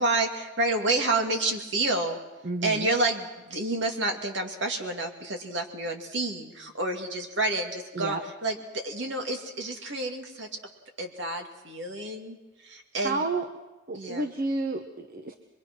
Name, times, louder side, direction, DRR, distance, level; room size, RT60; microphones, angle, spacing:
voice 1, 0.0-2.2 2.6-10.6 11.0-12.4 12.6-13.3 13.9-14.3, right 2 dB, 60° right, 3 dB, 2.5 m, -29 dB
voice 2, 2.4-2.9 7.9-8.2 13.0-13.5 13.9-15.3, right 3 dB, 45° right, 6 dB, 1.0 m, -30 dB
24.5 x 22.5 x 6.2 m, 1.1 s
head